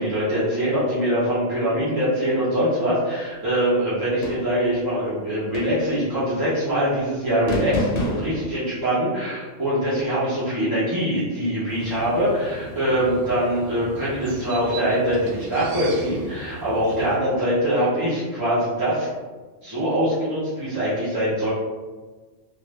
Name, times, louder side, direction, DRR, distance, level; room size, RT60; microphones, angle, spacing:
voice 1, 0.0-19.1 19.6-21.5, equal, 20° right, -11 dB, 0.7 m, -23 dB
sound 1, 4.2-4.7 5.5-6.0 7.5-8.5, left 1 dB, 85° left, 1.1 m, -28 dB
sound 2, 11.7-17.2, right 2 dB, 85° right, 0.9 m, -39 dB
2.5 x 2.5 x 3.2 m, 1.4 s
omnidirectional pair, 1.3 m